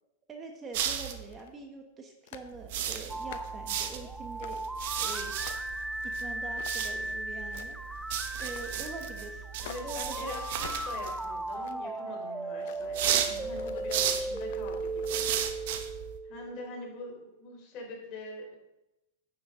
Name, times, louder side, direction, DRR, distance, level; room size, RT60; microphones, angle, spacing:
voice 1, 0.3-4.7 5.0-5.3 6.0-7.8 8.4-9.5 9.8-10.4, right 3 dB, 20° right, 3 dB, 1.2 m, -44 dB
sound 1, 0.7-1.4 2.5-11.5 12.9-16.2, right 9 dB, 65° right, 1.0 m, -35 dB
sound 2, 1.1-1.6 2.2-2.5 3.0-3.6 4.4-4.7 5.1-5.8 6.5-7.0 7.3-7.9 8.4-8.8 9.6-10.0 10.6-10.9 11.3-12.0 12.5-12.9 13.5-15.2, left 10 dB, 65° left, 0.7 m, -49 dB
sound 3, 3.1-16.9, right 2 dB, 5° right, 0.4 m, -37 dB
voice 2, 9.6-15.2 16.2-18.5, left 2 dB, 45° left, -1 dB, 3.6 m, -43 dB
9.4 x 7.9 x 3.7 m, 0.92 s
hypercardioid pair, 125°, 0 cm